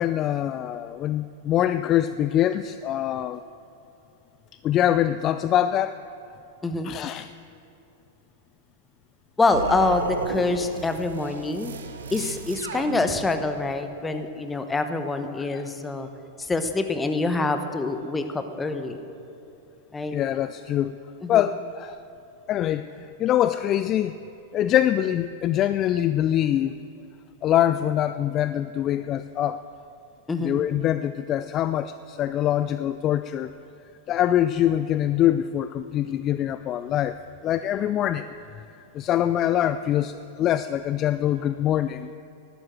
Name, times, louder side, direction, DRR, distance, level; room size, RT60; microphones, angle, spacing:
voice 1, 0.0-3.4 4.6-6.0 6.8-7.3 15.4-15.6 20.1-20.9 21.3-21.9 22.5-22.8 23.2-24.1 24.5-26.7 27.4-29.6 30.4-33.5 34.1-37.2 37.4-38.2 38.9-42.2, left 11 dB, 35° left, 12 dB, 0.3 m, -24 dB
voice 2, 9.4-11.8 12.1-16.1 16.4-19.0 19.9-20.2 21.2-21.4 30.3-30.6, left 3 dB, 15° left, 8 dB, 1.1 m, -26 dB
sound 1, 9.5-13.6, right 5 dB, 75° right, 1.0 m, -33 dB
12.5 x 11.5 x 7.6 m, 2.7 s
figure-of-eight pair, 95°, 0 cm